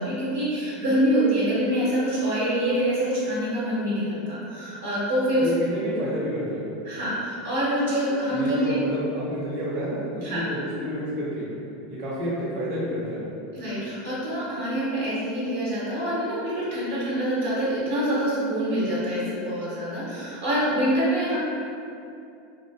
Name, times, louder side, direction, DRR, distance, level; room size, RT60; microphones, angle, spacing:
voice 1, 0.0-5.5 6.8-8.8 10.2-10.4 13.5-21.4, right 1 dB, 85° right, -9 dB, 1.0 m, -25 dB
voice 2, 5.4-6.7 8.3-11.5 11.9-13.3, equal, 55° right, -7 dB, 0.7 m, -30 dB
2.5 x 2.0 x 3.2 m, 2.6 s
hypercardioid pair, 90°, 0 cm